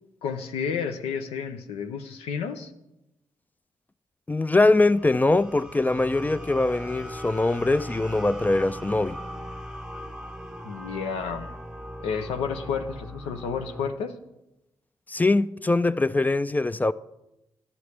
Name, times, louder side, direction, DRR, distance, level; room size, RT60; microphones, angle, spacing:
voice 1, 0.2-2.7 10.6-11.5 12.0-14.2, left 6 dB, 85° left, 0.6 m, -31 dB
voice 2, 4.3-9.2 15.1-16.9, left 2 dB, 15° left, 0.3 m, -22 dB
sound 1, 4.6-13.9, equal, 5° right, 0.8 m, -39 dB
11.5 x 7.1 x 3.3 m
supercardioid pair, 45°, 10 cm